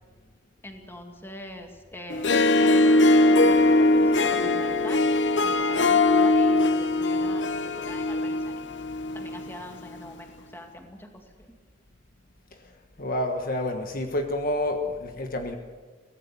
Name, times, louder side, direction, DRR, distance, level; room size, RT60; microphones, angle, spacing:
voice 1, 0.6-5.0 5.4-8.6 9.1-11.5, left 1 dB, 15° left, 3 dB, 2.4 m, -42 dB
Harp, 2.1-9.5, left 2 dB, 70° left, 0.9 m, -21 dB
voice 2, 13.0-15.6, left 1 dB, 50° left, 5 dB, 1.4 m, -28 dB
23.5 x 17.5 x 7.0 m, 1.4 s
head